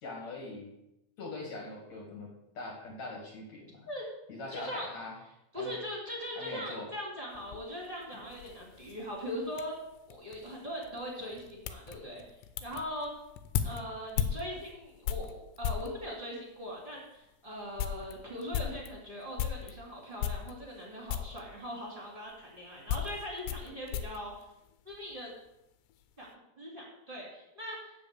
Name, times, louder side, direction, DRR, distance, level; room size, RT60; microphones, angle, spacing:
voice 1, 0.0-0.7 1.2-2.3 2.5-3.9 4.3-5.1 5.6-5.7 6.4-6.9, left 2 dB, 50° left, -1 dB, 2.5 m, -42 dB
voice 2, 4.5-4.9 5.5-9.7 10.1-12.2 12.6-13.1 13.6-24.4 24.8-25.3 26.2-26.3 26.5-27.9, equal, 20° right, -2 dB, 1.6 m, -40 dB
sound 1, 7.3-16.0 16.7-16.8 17.2-17.3 17.6-19.8 20.2-20.8 21.1-21.5 22.3-25.2 25.5-26.0, left 9 dB, 85° left, 2.9 m, -37 dB
7.6 x 6.8 x 8.1 m, 0.87 s
omnidirectional pair, 5.1 m